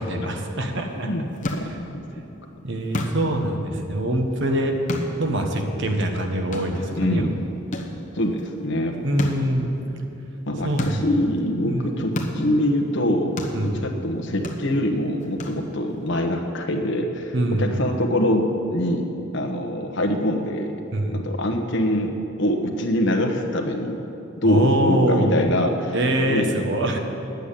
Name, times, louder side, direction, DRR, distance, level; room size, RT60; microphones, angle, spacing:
voice 1, 0.0-1.8 2.6-4.7 5.2-7.3 9.0-9.7 10.6-11.1 11.7-12.0 13.5-13.8 17.3-17.8 20.9-21.2 24.4-25.5 25.9-27.0, right 1 dB, 65° right, 4 dB, 1.3 m, -24 dB
sound 1, 0.9-16.1, left 1 dB, 40° left, 1.1 m, -35 dB
voice 2, 1.0-2.0 7.0-7.4 8.1-8.9 10.5-13.3 13.6-18.5 18.7-19.1 19.3-20.8 21.1-24.1 24.4-25.9 26.3-26.7, left 1 dB, 60° left, 3 dB, 1.2 m, -24 dB
10.5 x 8.2 x 8.4 m, 2.9 s
head